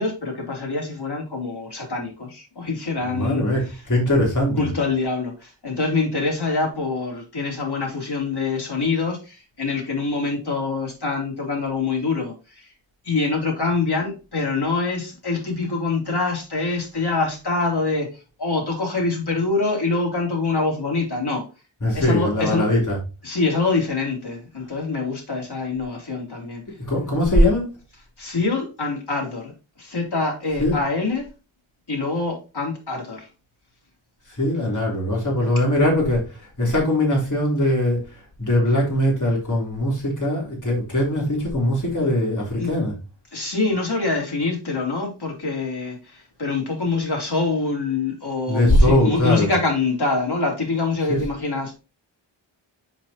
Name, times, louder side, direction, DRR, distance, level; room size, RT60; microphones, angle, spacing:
voice 1, 0.0-3.8 4.5-12.7 13.0-21.4 21.9-22.7 23.2-26.6 28.2-31.3 31.9-33.3 42.6-42.7 43.3-51.7, left 3 dB, 55° left, 3.1 m, -25 dB
voice 2, 3.0-4.7 21.8-23.0 26.9-27.7 30.6-30.8 34.4-38.0 38.4-42.9 48.5-49.5 51.0-51.2, left 1 dB, 40° left, 3.4 m, -21 dB
7.2 x 5.8 x 2.8 m
wide cardioid pair, 55°, 48 cm